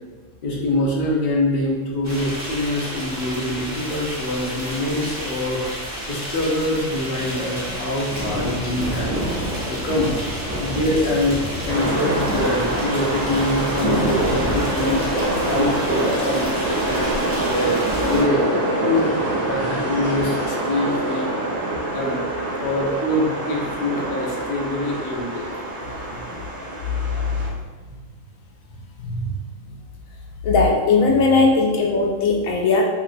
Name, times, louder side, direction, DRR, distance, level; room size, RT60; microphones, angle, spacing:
voice 1, 0.4-5.6 6.1-9.3 9.6-10.1 10.6-11.4 11.6-17.8 18.1-18.4 18.8-19.2 19.4-21.6 21.9-22.2 22.6-25.5, left 1 dB, 55° left, -2 dB, 0.6 m, -24 dB
sound 1, 2.0-18.2, equal, 15° right, 0.7 m, -29 dB
sound 2, 11.7-27.5, right 1 dB, 75° right, 1.1 m, -25 dB
voice 2, 29.0-29.3 30.4-32.8, left 3 dB, 80° left, -1 dB, 1.0 m, -18 dB
2.9 x 2.7 x 2.5 m, 1.3 s
omnidirectional pair, 1.4 m